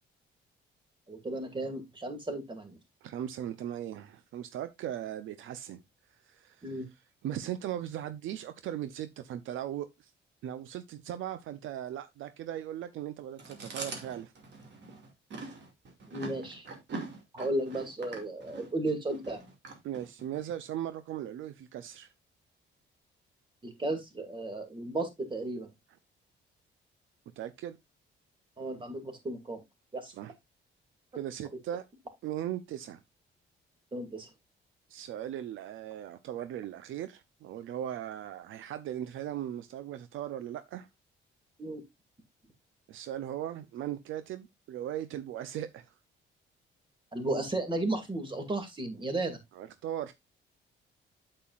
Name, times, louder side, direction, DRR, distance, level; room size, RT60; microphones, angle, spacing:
voice 1, 1.1-2.8 6.6-6.9 16.1-16.7 17.3-19.4 23.6-25.7 28.6-29.6 29.9-30.1 33.9-34.3 41.6-41.8 47.1-49.4, right 2 dB, 25° right, 2.4 m, -34 dB
voice 2, 3.0-5.8 6.3-6.6 7.2-10.1 10.4-14.3 19.8-22.1 27.4-27.8 30.1-30.3 31.2-31.8 32.2-33.0 34.9-40.9 42.9-45.9 49.6-50.1, right 11 dB, 80° right, 0.7 m, -38 dB
Chewing mastication, 13.4-20.4, right 3 dB, 65° right, 2.4 m, -43 dB
8.3 x 7.7 x 2.5 m
cardioid pair, 90°, 20 cm